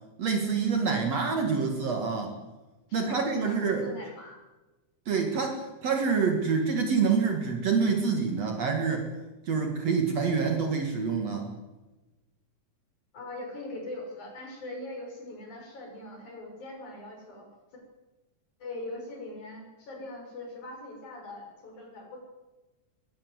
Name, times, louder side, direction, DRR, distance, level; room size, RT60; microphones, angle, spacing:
voice 1, 0.2-2.4 2.9-3.9 5.1-9.1 9.5-11.5, right 5 dB, 60° right, 3 dB, 3.0 m, -27 dB
voice 2, 2.9-4.4 13.1-17.5 18.6-22.2, left 2 dB, 70° left, 1 dB, 7.5 m, -41 dB
21.5 x 19.5 x 8.1 m, 1.1 s
omnidirectional pair, 3.5 m